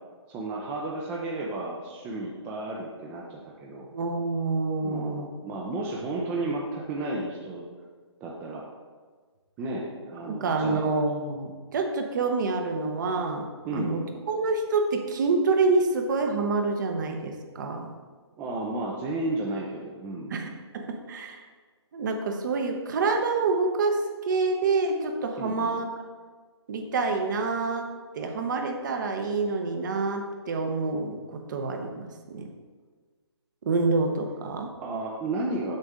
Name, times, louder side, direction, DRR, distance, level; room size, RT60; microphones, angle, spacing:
voice 1, 0.3-3.9 4.8-7.7 8.2-8.6 9.6-10.9 13.6-14.1 18.4-20.4 25.4-25.8 34.8-35.7, right 2 dB, 10° right, -2 dB, 0.4 m, -33 dB
voice 2, 3.9-5.3 10.3-13.5 13.7-14.0 14.3-17.9 20.3-21.4 21.9-25.9 26.7-27.9 28.1-32.5 33.6-34.7, right 3 dB, 40° right, 4 dB, 0.8 m, -27 dB
6.6 x 6.1 x 3.5 m, 1.5 s
hypercardioid pair, 150°, 15 cm